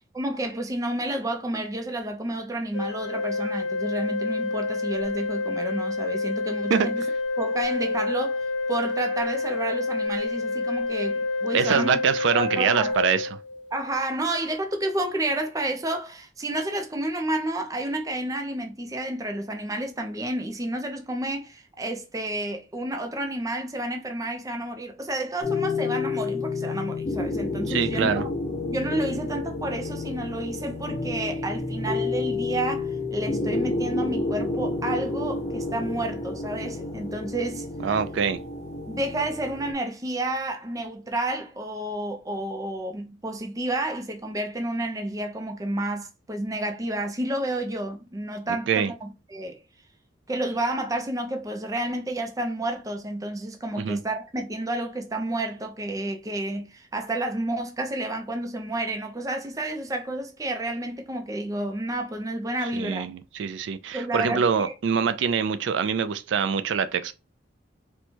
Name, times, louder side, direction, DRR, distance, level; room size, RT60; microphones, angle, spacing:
voice 1, 0.1-7.0 7.4-11.9 12.3-13.0 13.7-28.3 28.7-37.7 38.9-49.6 50.3-63.1 63.9-64.7, right 1 dB, 20° right, 0.5 m, -30 dB
Organ, 2.7-13.8, left 3 dB, 80° left, 0.8 m, -28 dB
voice 2, 11.5-13.3 27.7-28.3 37.8-38.4 48.7-48.9 53.8-54.0 62.7-67.1, right 6 dB, 75° right, 0.4 m, -24 dB
sound 1, 25.4-39.7, left 3 dB, 35° left, 1.1 m, -30 dB
4.4 x 2.2 x 2.8 m
head